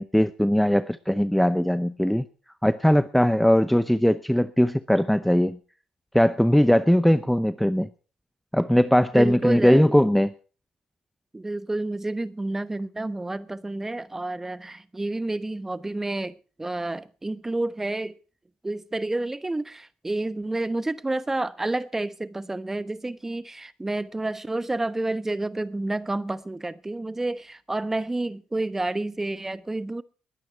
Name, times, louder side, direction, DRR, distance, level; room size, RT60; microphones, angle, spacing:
voice 1, 0.0-2.2 2.6-5.6 6.1-7.9 8.5-10.3, equal, 5° left, 0.7 m, -20 dB
voice 2, 9.1-9.8 11.3-18.2 18.6-30.0, right 2 dB, 15° right, 1.0 m, -29 dB
20.5 x 9.3 x 4.6 m
supercardioid pair, 65°, 2 cm